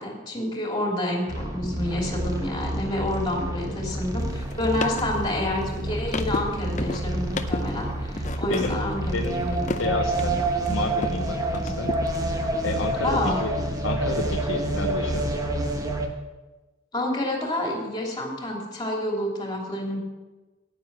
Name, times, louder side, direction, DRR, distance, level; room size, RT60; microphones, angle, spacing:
voice 1, 0.0-9.7 13.0-13.4 16.9-20.0, left 1 dB, 20° left, -1 dB, 2.9 m, -28 dB
sound 1, 1.3-16.1, right 2 dB, 20° right, 1.2 m, -28 dB
sound 2, 4.2-11.2 11.5-13.0, left 3 dB, 40° left, 0.6 m, -34 dB
voice 2, 8.5-8.8 9.1-10.4 10.7-11.9 12.6-13.5 13.8-15.3, left 3 dB, 70° left, 3 dB, 0.9 m, -30 dB
10.0 x 9.5 x 6.1 m, 1.2 s
head